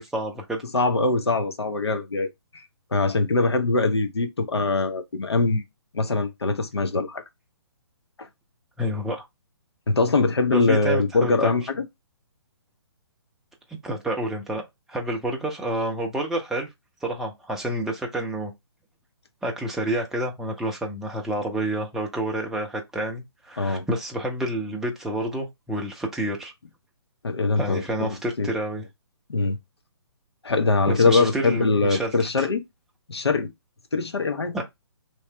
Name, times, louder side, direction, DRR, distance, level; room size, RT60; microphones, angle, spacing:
voice 1, 0.0-0.7 8.8-9.2 10.5-11.5 13.8-14.6 14.9-16.7 17.0-18.5 19.4-26.5 27.6-28.8 30.9-32.5 34.5-34.6, right 1 dB, 5° right, 0.5 m, -29 dB
voice 2, 0.7-2.6 2.9-5.6 5.9-7.2 8.2-8.3 9.9-11.8 23.6-23.9 27.2-28.5 29.3-29.6 30.4-32.6 33.1-33.5 33.9-34.5, left 3 dB, 75° left, 0.8 m, -23 dB
3.1 x 2.8 x 3.2 m
figure-of-eight pair, 135°, 14 cm